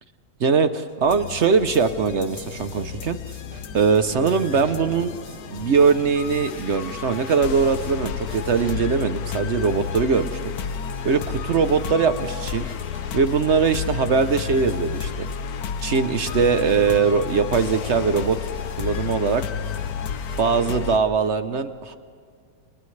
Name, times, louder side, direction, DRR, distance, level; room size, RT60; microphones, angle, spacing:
voice 1, 0.4-3.2 3.7-5.2 5.5-10.5 11.0-12.7 13.1-15.3 15.8-18.4 18.8-19.4 20.4-22.0, right 5 dB, 55° right, 10 dB, 0.8 m, -21 dB
sound 1, 0.7-20.4, right 1 dB, 40° right, 8.2 m, -47 dB
sound 2, 1.1-21.0, left 7 dB, 60° left, 1.2 m, -31 dB
Thunder, 3.4-16.7 17.1-17.4 17.8-17.9 18.7-19.3, right 1 dB, 35° left, 6.4 m, -49 dB
29.5 x 29.0 x 3.3 m, 2.1 s
omnidirectional pair, 2.0 m